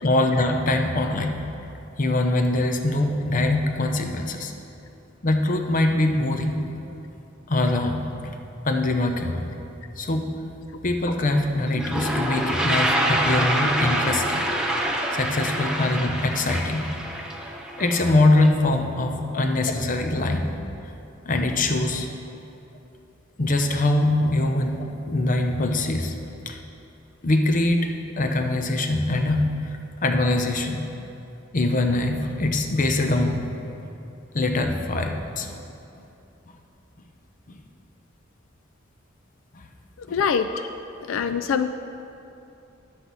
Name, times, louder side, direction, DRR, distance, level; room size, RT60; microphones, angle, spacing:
voice 1, 0.0-1.5 2.0-4.5 5.2-6.7 7.5-8.1 8.6-9.5 10.0-10.3 10.8-14.4 15.1-16.9 17.8-20.5 21.2-22.1 23.4-26.1 26.5-26.6 27.2-29.5 30.0-30.9 31.5-33.4 33.8-33.9 34.3-35.5 37.5-37.6 39.5-39.6 40.1-40.2 40.5-40.6 41.1-41.2, left 2 dB, 45° left, 5 dB, 0.7 m, -23 dB
Toilet flush, 11.3-11.4 11.7-18.5, right 1 dB, 5° right, 0.8 m, -26 dB
voice 2, 40.0-40.5 41.1-41.7, left 7 dB, 85° left, 9 dB, 0.3 m, -23 dB
10.5 x 7.7 x 4.0 m, 2.8 s
head